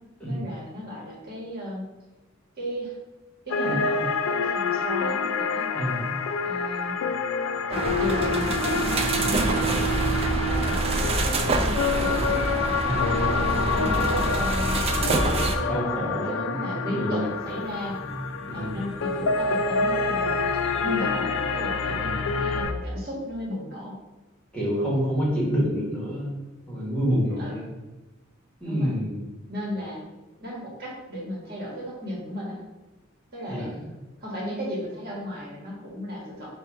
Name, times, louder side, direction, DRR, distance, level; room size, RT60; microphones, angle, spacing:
voice 1, 0.2-1.9 2.6-3.0 3.4-5.7 6.4-6.9 7.7-9.8 10.4-12.4 13.2-15.7 16.2-18.0 18.5-20.3 20.8-24.0 27.4-27.7 28.6-28.9 29.5-30.0 30.4-32.6 33.3-33.7 34.2-36.5, equal, 50° right, -4 dB, 1.4 m, -34 dB
sound 1, 3.5-22.7, left 5 dB, 75° left, 0.3 m, -28 dB
voice 2, 3.6-4.0 5.7-6.2 12.8-14.3 15.6-17.3 18.0-18.1 18.5-18.8 21.8-22.4 24.5-26.4 26.7-27.7 28.6-29.2 33.5-33.8, equal, 5° left, -6 dB, 1.2 m, -28 dB
sound 2, 7.7-15.6, right 3 dB, 30° right, 0.4 m, -25 dB
sound 3, 17.3-22.6, left 2 dB, 30° left, 0.7 m, -37 dB
4.3 x 2.3 x 4.7 m, 1.1 s
head